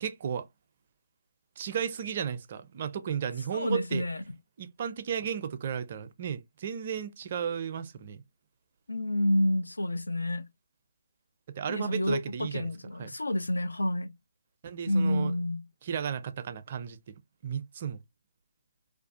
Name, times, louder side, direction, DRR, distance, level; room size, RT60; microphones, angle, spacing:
voice 1, 0.0-0.5 1.6-4.0 4.6-8.2 11.6-12.7 13.0-13.1 14.6-15.3 15.8-17.1 17.4-18.0, right 8 dB, 40° right, 0.4 m, -34 dB
voice 2, 3.5-4.2 8.9-10.5 11.6-14.2 14.9-15.6, left 1 dB, 85° left, 0.5 m, -29 dB
2.5 x 2.3 x 2.5 m
figure-of-eight pair, 145°, 0 cm